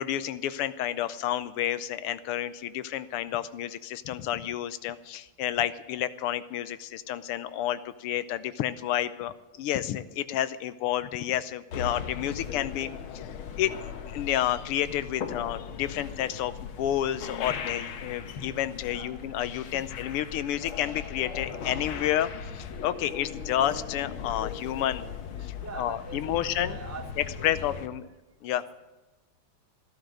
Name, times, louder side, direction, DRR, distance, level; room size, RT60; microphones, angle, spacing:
voice 1, 0.0-13.3 13.6-13.7 14.1-25.1 25.4-26.8 27.4-28.1 28.4-28.6, left 12 dB, 90° left, 14 dB, 1.7 m, -30 dB
sound 1, 11.7-27.9, left 7 dB, 70° left, 1.9 m, -38 dB
voice 2, 18.8-19.2 19.7-19.9 24.4-24.8 25.6-27.7 28.4-28.6, right 3 dB, 10° right, 3 dB, 0.8 m, -44 dB
14.0 x 13.0 x 6.4 m, 1.1 s
omnidirectional pair, 2.4 m